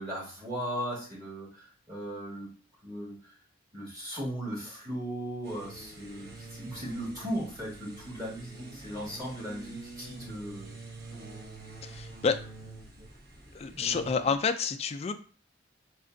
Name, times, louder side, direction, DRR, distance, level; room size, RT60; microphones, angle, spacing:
voice 1, 0.0-2.5 2.8-3.2 3.7-10.8, equal, 20° right, -7 dB, 2.0 m, -37 dB
sound 1, 5.4-14.4, right 3 dB, 55° right, 0.8 m, -46 dB
voice 2, 11.8-12.4 13.5-15.1, left 5 dB, 35° left, 7 dB, 0.3 m, -29 dB
4.3 x 2.4 x 3.8 m, 0.40 s
head